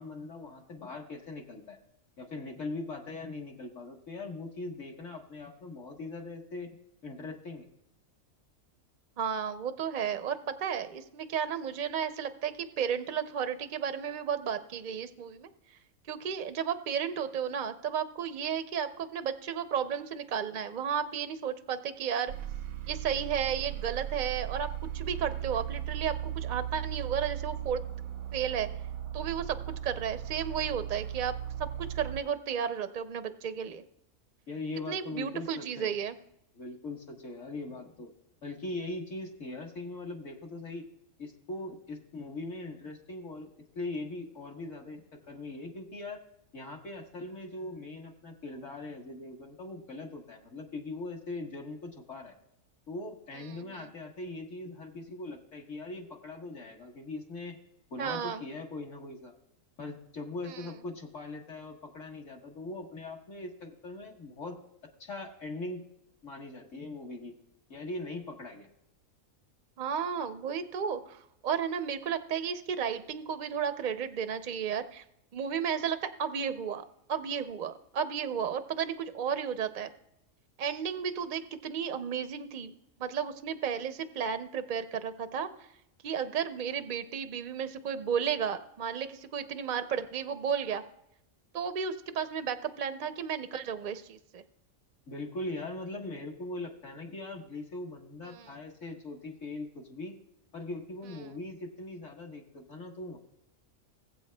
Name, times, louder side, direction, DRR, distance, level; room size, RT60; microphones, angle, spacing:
voice 1, 0.0-1.8 2.2-6.7 7.0-7.7 34.5-36.0 36.5-38.1 38.4-40.9 41.2-46.2 46.5-52.3 52.9-57.6 57.9-59.3 59.8-64.6 65.0-65.8 66.2-67.4 67.7-68.7 95.1-100.1 100.5-103.2, left 2 dB, 60° left, 0 dB, 1.7 m, -41 dB
voice 2, 9.2-15.5 16.1-22.3 22.9-24.7 24.9-27.8 28.3-28.7 29.1-31.3 31.6-33.8 34.9-36.1 53.5-53.8 58.0-58.4 60.4-60.7 69.8-75.0 75.3-79.9 80.6-82.7 83.0-85.5 86.0-90.8 91.5-94.4 98.2-98.5, right 7 dB, 60° right, 10 dB, 0.5 m, -33 dB
sound 1, 22.3-32.2, right 11 dB, 85° right, 1.0 m, -37 dB
20.5 x 7.7 x 2.2 m, 0.80 s
omnidirectional pair, 1.4 m